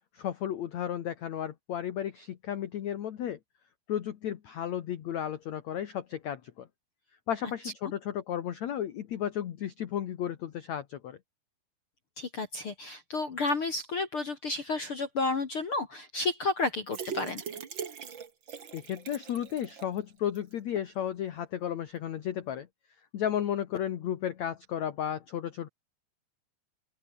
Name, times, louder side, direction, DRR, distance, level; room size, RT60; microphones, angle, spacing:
voice 1, 0.1-3.4 3.9-6.7 7.3-11.2 18.7-22.7 23.1-25.7, left 10 dB, 65° left, 1.8 m, -33 dB
voice 2, 12.2-17.4, left 3 dB, 45° left, 1.8 m, -31 dB
sound 1, 16.9-20.0 20.3-20.4 20.8-20.9, right 7 dB, 50° right, 1.4 m, -41 dB
open air
omnidirectional pair, 5.2 m